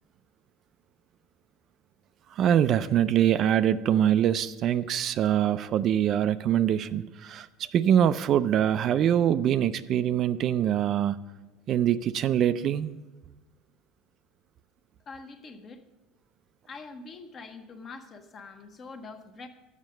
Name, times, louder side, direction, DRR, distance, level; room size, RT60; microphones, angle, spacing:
voice 1, 2.3-11.2 11.7-13.0, right 10 dB, 45° right, 0.3 m, -24 dB
voice 2, 15.0-15.8 16.7-19.5, left 4 dB, 35° left, 0.9 m, -44 dB
7.2 x 6.4 x 7.7 m
supercardioid pair, 115°, 0 cm